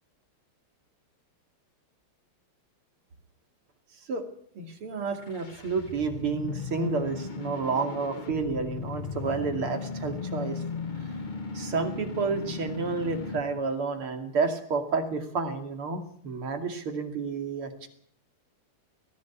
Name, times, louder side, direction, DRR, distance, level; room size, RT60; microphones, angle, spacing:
voice 1, 4.5-10.6 11.5-17.9, right 4 dB, 75° right, 5 dB, 3.4 m, -30 dB
sound 1, 5.0-13.6, left 5 dB, 40° left, 0.7 m, -37 dB
20.0 x 15.0 x 8.5 m, 0.65 s
omnidirectional pair, 2.4 m